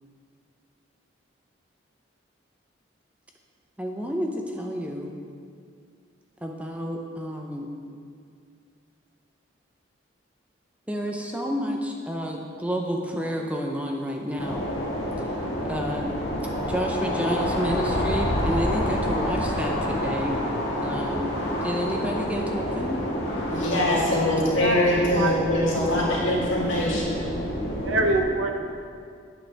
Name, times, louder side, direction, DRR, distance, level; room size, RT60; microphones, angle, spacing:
voice 1, 3.8-5.1 6.4-7.7 10.9-14.7 15.6-16.2 16.7-20.4 20.8-23.1, equal, 5° right, 1 dB, 0.6 m, -30 dB
sound 1, 14.4-28.2, equal, 60° left, 1.6 m, -28 dB
voice 2, 23.5-27.2, left 1 dB, 80° left, -5 dB, 2.2 m, -23 dB
voice 3, 24.6-26.1 27.8-28.7, right 2 dB, 80° right, 4 dB, 0.8 m, -27 dB
8.7 x 8.5 x 3.4 m, 2.3 s
head